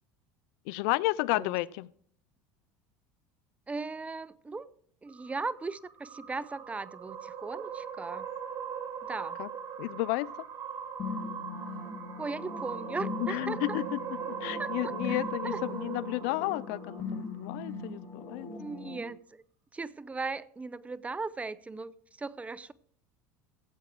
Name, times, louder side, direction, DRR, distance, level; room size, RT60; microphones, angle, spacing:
voice 1, 0.7-1.9 9.4-9.5 9.8-10.3 13.2-14.0 14.4-18.5, left 20 dB, 70° left, 22 dB, 0.4 m, -32 dB
voice 2, 3.7-4.7 5.0-8.3 9.0-9.4 12.2-13.8 14.6-15.6 18.6-19.4 19.7-22.7, right 3 dB, 15° right, 19 dB, 0.6 m, -38 dB
sound 1, 5.1-17.6, right 7 dB, 45° right, 3.7 m, -40 dB
sound 2, 11.0-19.0, left 4 dB, 35° left, 2.3 m, -40 dB
15.0 x 8.2 x 4.6 m, 0.63 s
supercardioid pair, 95°, 8 cm